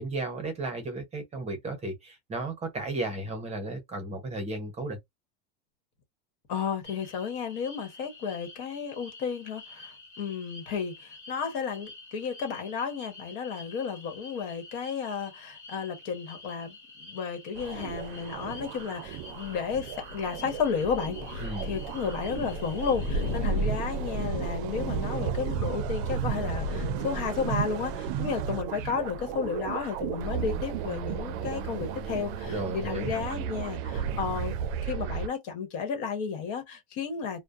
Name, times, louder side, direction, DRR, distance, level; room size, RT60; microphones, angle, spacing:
voice 1, 0.0-5.0 21.4-21.7 32.5-33.1, right 2 dB, 20° right, 0.7 m, -34 dB
voice 2, 6.5-34.6 34.8-37.4, left 6 dB, 60° left, 1.1 m, -33 dB
sound 1, 6.8-23.4, left 3 dB, 10° left, 1.4 m, -48 dB
sound 2, 17.6-35.3, right 9 dB, 60° right, 0.5 m, -34 dB
Thunder, 19.1-33.6, left 1 dB, 90° left, 0.8 m, -38 dB
2.5 x 2.1 x 2.3 m
supercardioid pair, 140°, 33 cm